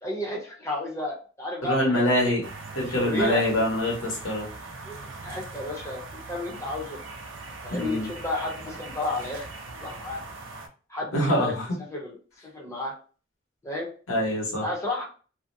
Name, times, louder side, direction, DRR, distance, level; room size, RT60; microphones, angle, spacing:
voice 1, 0.0-2.4 2.9-3.4 4.9-5.0 5.2-7.0 7.6-9.5 9.8-10.2 10.9-11.5 11.9-12.2 12.5-12.9 13.6-13.9 14.6-15.0, left 2 dB, 15° left, -2 dB, 0.7 m, -32 dB
voice 2, 1.6-2.4 2.7-4.5 7.7-8.1 11.1-11.8 14.1-14.6, left 1 dB, 80° left, -3 dB, 1.2 m, -24 dB
sound 1, 2.4-10.7, right 3 dB, 65° right, 0.5 m, -41 dB
2.6 x 2.1 x 2.6 m, 0.38 s
head